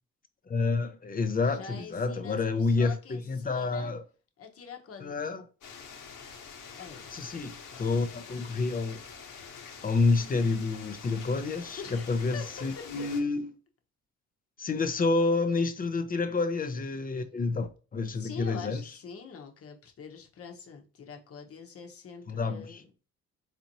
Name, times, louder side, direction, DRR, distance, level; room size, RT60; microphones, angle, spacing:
voice 1, 0.5-4.0 5.0-5.4 7.1-9.0 9.8-13.5 14.6-18.8 22.3-22.8, left 3 dB, 30° left, 0.6 m, -29 dB
voice 2, 1.4-3.9 4.4-5.3 6.8-8.0 11.8-13.0 18.1-22.8, left 6 dB, 50° left, 1.0 m, -45 dB
sound 1, 5.6-13.2, left 6 dB, 80° left, 1.2 m, -46 dB
4.2 x 2.7 x 2.9 m
cardioid pair, 90°, 30 cm